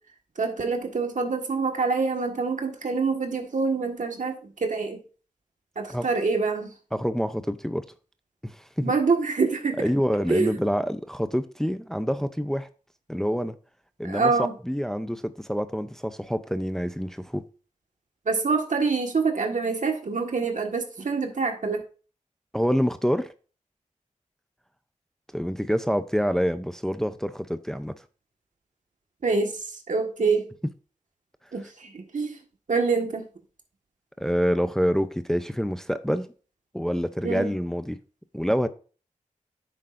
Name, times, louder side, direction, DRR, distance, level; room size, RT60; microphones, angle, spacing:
voice 1, 0.4-5.0 5.7-6.7 8.8-9.9 10.3-10.6 14.0-14.5 18.2-21.8 29.2-29.5 29.9-30.5 31.5-32.3 32.7-33.2 37.2-37.5, right 4 dB, 65° right, 1.6 m, -25 dB
voice 2, 6.9-7.9 8.4-8.9 9.8-12.7 13.1-13.5 14.0-14.3 14.6-17.4 22.5-23.3 25.3-28.0 34.2-36.3 36.7-38.0 38.3-38.7, equal, 5° left, 0.6 m, -26 dB
9.9 x 7.7 x 2.6 m
cardioid pair, 60°, 14 cm